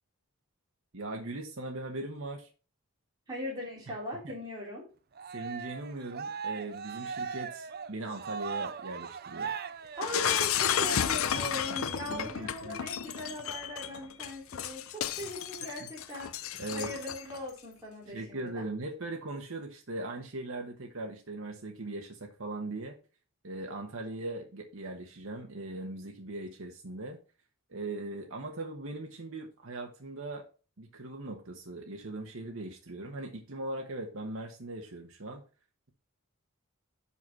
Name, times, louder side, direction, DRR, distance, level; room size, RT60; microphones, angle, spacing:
voice 1, 0.9-2.5 4.2-4.3 5.3-9.5 11.3-11.6 12.1-12.8 16.6-16.9 18.1-23.0 23.4-27.2 27.7-30.4 30.8-35.4, right 2 dB, 65° right, 3 dB, 1.1 m, -39 dB
voice 2, 3.3-4.9 9.9-16.3 16.7-18.7, equal, 20° right, -4 dB, 3.4 m, -40 dB
Cheering, 5.2-10.6, right 6 dB, 45° right, 0.5 m, -39 dB
Shatter, 10.0-17.4, left 9 dB, 70° left, 0.6 m, -32 dB
6.1 x 5.7 x 5.4 m, 0.34 s
head